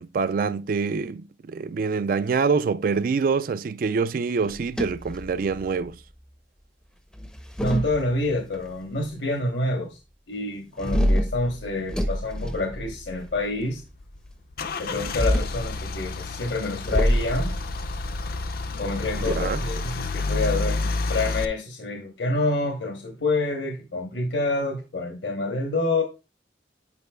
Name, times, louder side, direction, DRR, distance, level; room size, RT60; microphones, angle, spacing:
voice 1, 0.0-6.0 19.2-19.6, right 5 dB, 50° right, 0.3 m, -25 dB
sound 1, 4.4-5.8 7.1-8.5 10.8-13.4 14.9-15.7 16.8-19.2, equal, 5° left, 0.5 m, -27 dB
voice 2, 7.6-10.0 10.3-13.8 14.8-17.5 18.8-26.0, left 2 dB, 80° left, 1.1 m, -27 dB
Car / Engine starting / Idling, 13.6-21.4, left 3 dB, 55° left, 0.5 m, -30 dB
9.7 x 4.7 x 2.2 m
head